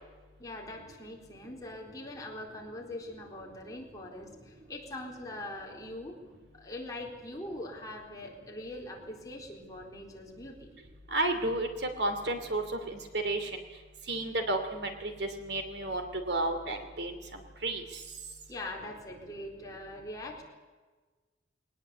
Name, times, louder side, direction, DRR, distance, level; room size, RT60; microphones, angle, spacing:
voice 1, 0.4-6.2 6.5-10.7 18.5-20.4, left 1 dB, 20° left, -1 dB, 4.1 m, -42 dB
voice 2, 11.1-11.7 12.0-13.0 13.2-13.5 14.1-17.2 17.6-17.8, right 2 dB, 60° right, 6 dB, 2.8 m, -32 dB
22.0 x 19.0 x 8.5 m, 1.3 s
head